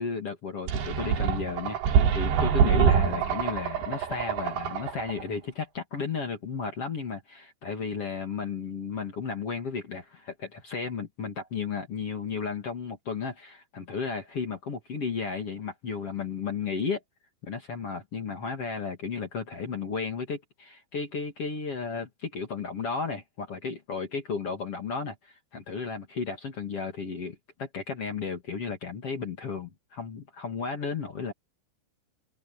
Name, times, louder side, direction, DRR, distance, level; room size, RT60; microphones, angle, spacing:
voice 1, 0.0-17.0 17.4-31.3, left 5 dB, 40° left, 2.3 m, -34 dB
sound 1, 0.7-5.2, right 7 dB, 65° right, 4.3 m, -25 dB
omnidirectional pair, 5.6 m